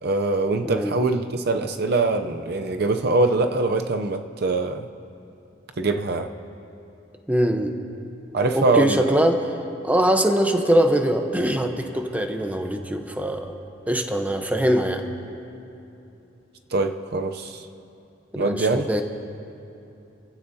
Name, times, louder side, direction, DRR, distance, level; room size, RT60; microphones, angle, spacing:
voice 1, 0.0-4.9 5.8-6.3 8.3-9.2 16.7-17.6 18.4-18.9, right 3 dB, 60° right, 7 dB, 0.6 m, -23 dB
voice 2, 0.6-0.9 7.3-7.7 8.5-9.4 9.8-13.6 13.9-15.0 18.4-19.0, right 1 dB, 10° right, 4 dB, 0.9 m, -22 dB
29.0 x 15.5 x 2.8 m, 2.9 s
head